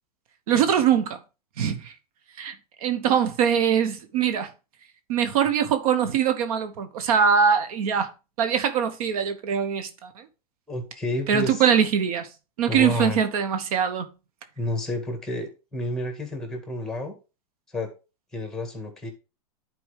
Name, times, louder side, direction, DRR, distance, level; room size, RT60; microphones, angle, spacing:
voice 1, 0.5-1.2 1.6-1.9 2.4-2.5 2.8-4.5 5.1-8.1 8.4-10.2 11.3-12.3 12.6-14.1, right 7 dB, 70° right, 1.0 m, -22 dB
voice 2, 10.7-11.6 12.7-13.2 14.6-17.2 17.7-17.9 18.3-19.1, left 1 dB, 5° left, 1.9 m, -30 dB
10.5 x 4.4 x 3.4 m
supercardioid pair, 130°, 19 cm